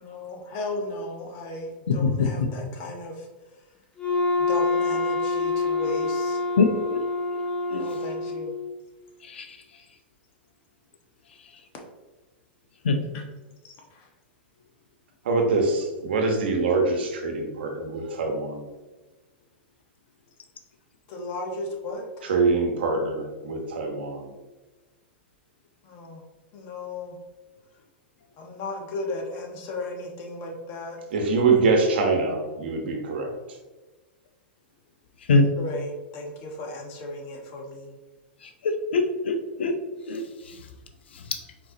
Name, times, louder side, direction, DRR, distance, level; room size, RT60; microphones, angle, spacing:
voice 1, 0.0-3.3 4.4-6.4 7.8-8.5 13.1-13.2 13.9-14.1 21.1-22.0 25.8-26.2 26.5-27.2 28.4-31.0 35.6-37.9, left 2 dB, 45° left, 1 dB, 1.2 m, -35 dB
Wind instrument woodwind instrument, 4.0-8.7, left 3 dB, 20° left, 1.1 m, -26 dB
voice 2, 6.6-7.0 7.7-7.8 9.3-9.4 12.8-13.0 35.3-35.5 38.6-39.7 40.1-40.2, left 3 dB, 85° left, 6 dB, 0.6 m, -22 dB
voice 3, 15.2-18.6 22.2-24.3 31.1-33.3, right 3 dB, 75° right, 3 dB, 1.1 m, -24 dB
4.5 x 3.9 x 2.8 m, 1.2 s
hypercardioid pair, 110°, 6 cm